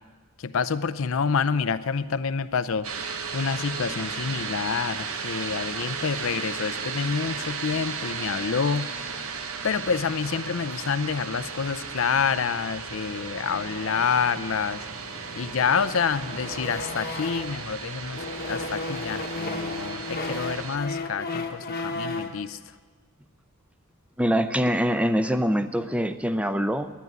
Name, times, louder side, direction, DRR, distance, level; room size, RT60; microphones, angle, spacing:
voice 1, 0.4-2.9 3.3-8.9 9.6-14.9 15.3-22.6, left 6 dB, 65° left, 12 dB, 0.5 m, -28 dB
sound 1, 2.8-20.8, right 5 dB, 75° right, 1.1 m, -35 dB
sound 2, 13.5-17.7 18.1-22.4, left 3 dB, 45° left, 1.1 m, -35 dB
voice 2, 24.2-26.9, equal, 5° right, 11 dB, 0.5 m, -24 dB
10.5 x 10.0 x 9.5 m, 1.4 s
head